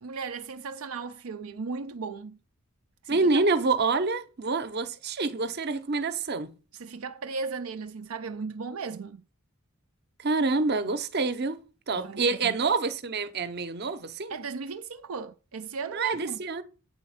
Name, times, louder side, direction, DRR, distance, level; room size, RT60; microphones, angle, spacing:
voice 1, 0.0-2.4 3.0-3.3 6.7-9.2 11.9-12.6 14.3-16.4, right 4 dB, 75° right, 0.5 m, -36 dB
voice 2, 3.1-6.5 10.2-14.3 15.9-16.6, right 3 dB, 50° right, 0.8 m, -27 dB
8.7 x 4.2 x 7.2 m
head